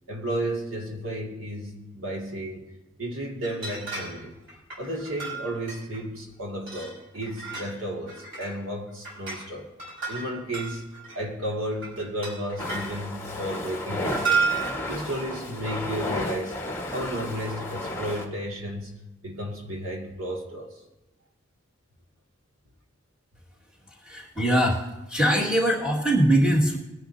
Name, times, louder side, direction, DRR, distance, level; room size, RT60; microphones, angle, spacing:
voice 1, 0.1-2.7 3.0-4.3 4.8-9.7 10.1-10.9 11.1-14.5 14.9-16.6 16.9-18.9 19.2-20.7, right 1 dB, 85° right, 0 dB, 2.3 m, -33 dB
sound 1, 3.4-4.2 4.5-6.0 6.7-7.8 8.1-8.6 8.9-9.4 9.8-11.2 11.7-12.9 14.1-14.8, right 5 dB, 65° right, 4.8 m, -31 dB
sound 2, 12.6-18.3, left 1 dB, 10° left, 1.5 m, -33 dB
voice 2, 24.1-26.8, right 1 dB, 5° right, -4 dB, 2.0 m, -22 dB
21.0 x 10.0 x 2.8 m, 0.98 s
head